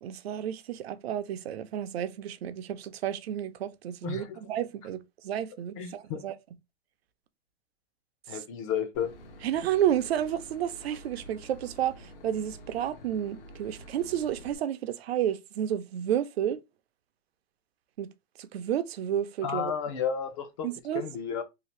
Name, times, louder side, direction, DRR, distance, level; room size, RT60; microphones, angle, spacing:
voice 1, 0.0-6.4 8.3-8.4 9.4-16.6 18.0-18.1 18.4-19.7 20.6-21.0, right 10 dB, 70° right, 0.6 m, -31 dB
voice 2, 4.0-4.4 5.8-6.2 8.3-9.1 19.4-20.7 20.9-21.4, left 8 dB, 30° left, 0.5 m, -32 dB
Boat Water vehicle / Engine, 8.9-14.6, equal, 55° left, 0.9 m, -48 dB
2.8 x 2.4 x 3.1 m
hypercardioid pair, 160°, 32 cm